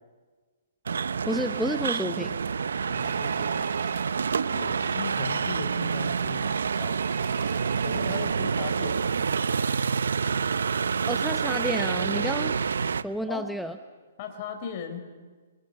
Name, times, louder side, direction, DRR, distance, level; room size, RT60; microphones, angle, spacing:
sound 1, 0.9-13.0, right 6 dB, 85° right, 0.8 m, -27 dB
voice 1, 1.3-2.4 11.1-12.6 13.0-13.8, equal, ahead, 7 dB, 0.8 m, -30 dB
voice 2, 2.8-3.7 4.5-7.0 7.8-9.6 13.3-13.5 14.2-15.0, left 6 dB, 40° left, 5 dB, 4.3 m, -38 dB
Telephone, 2.9-4.1 7.0-8.1, right 13 dB, 35° right, 1.7 m, -44 dB
sound 2, 3.0-9.4, right 7 dB, 60° right, 3.2 m, -48 dB
30.0 x 25.0 x 5.5 m, 1.4 s
hypercardioid pair, 145°, 0 cm